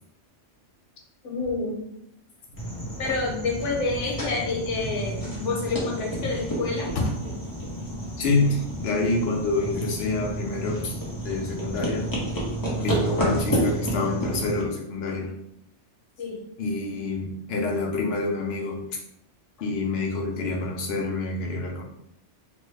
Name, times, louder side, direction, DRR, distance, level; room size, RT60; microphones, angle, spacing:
voice 1, 1.2-1.9 3.0-7.1 13.3-13.4 16.2-16.4, left 3 dB, 90° left, -1 dB, 1.1 m, -28 dB
sound 1, 2.6-14.6, right 1 dB, 25° left, 0.6 m, -30 dB
voice 2, 8.2-11.0 11.2-12.1 12.8-15.3 16.6-18.8 19.6-21.8, left 3 dB, 65° left, 0 dB, 0.9 m, -27 dB
3.1 x 2.0 x 3.2 m, 0.77 s
omnidirectional pair, 1.2 m